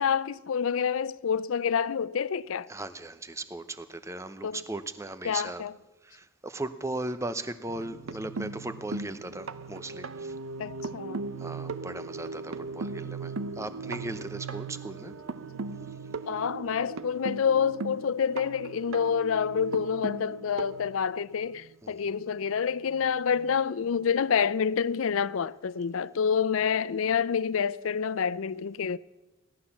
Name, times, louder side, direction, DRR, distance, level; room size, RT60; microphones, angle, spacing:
voice 1, 0.0-2.7 4.4-4.7 5.2-5.8 10.6-11.2 16.3-29.0, left 7 dB, 75° left, 0.4 m, -28 dB
voice 2, 2.7-5.6 6.0-10.3 11.4-15.1 21.8-22.0, right 2 dB, 15° right, 0.7 m, -37 dB
sound 1, 7.7-21.7 22.9-23.0 23.4-23.5, right 4 dB, 75° right, 0.7 m, -38 dB
17.5 x 11.5 x 7.1 m
head